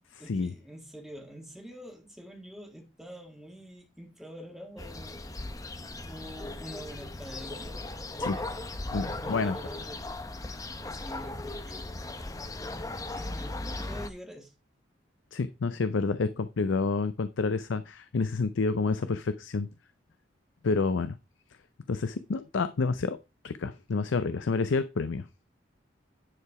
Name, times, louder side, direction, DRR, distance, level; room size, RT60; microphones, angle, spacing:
voice 1, 0.2-5.2 6.1-7.8 8.1-8.6 8.9-10.1 10.8-11.9 13.1-14.5, equal, ahead, 1.9 m, -46 dB
sound 1, 4.8-14.1, left 2 dB, 20° left, 0.7 m, -37 dB
voice 2, 8.9-9.5 15.3-19.7 20.6-21.1 21.9-23.2 23.4-25.2, left 4 dB, 90° left, 0.5 m, -29 dB
9.9 x 4.7 x 4.8 m
head